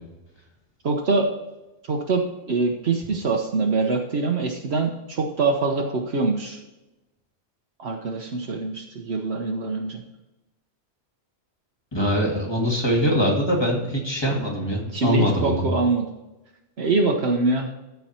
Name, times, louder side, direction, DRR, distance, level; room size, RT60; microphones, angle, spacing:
voice 1, 0.8-1.3 1.9-6.6 7.8-10.0 14.9-16.1 16.8-17.7, right 3 dB, 70° right, 1 dB, 1.2 m, -24 dB
voice 2, 11.9-15.6, equal, 25° left, -2 dB, 2.3 m, -23 dB
13.5 x 4.7 x 4.3 m, 0.99 s
omnidirectional pair, 1.1 m